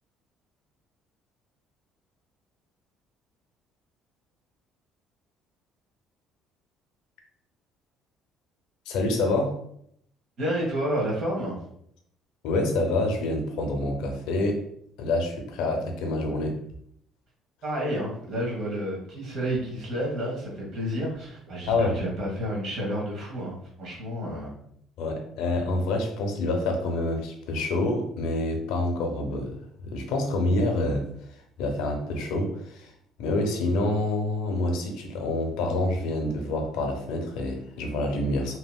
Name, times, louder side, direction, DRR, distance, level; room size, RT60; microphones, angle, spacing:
voice 1, 8.9-9.6 12.4-14.6 15.0-16.6 21.7-22.0 25.0-29.6 29.8-31.1 31.6-32.9 33.2-38.6, left 2 dB, 85° left, 3 dB, 0.6 m, -27 dB
voice 2, 10.4-11.6 17.6-24.5, equal, 55° right, -3 dB, 1.2 m, -30 dB
2.9 x 2.8 x 2.2 m, 0.70 s
cardioid pair, 120°, 0 cm